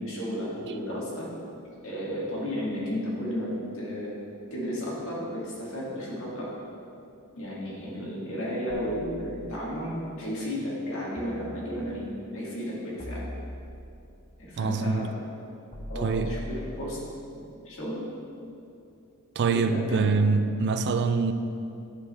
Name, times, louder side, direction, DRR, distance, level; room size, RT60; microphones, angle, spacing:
voice 1, 0.0-1.3 1.8-4.1 4.5-6.6 7.4-13.3 14.4-15.1 15.9-17.1 17.3-18.1 19.4-20.3, equal, 65° left, -5 dB, 2.0 m, -33 dB
voice 2, 0.7-1.0 14.6-15.0 16.0-16.3 19.4-21.3, right 4 dB, 50° right, 9 dB, 0.4 m, -25 dB
sound 1, 8.7-9.8 11.2-12.1 13.0-14.1 15.7-17.1, equal, 30° left, 0.9 m, -41 dB
10.5 x 5.0 x 4.2 m, 2.7 s
head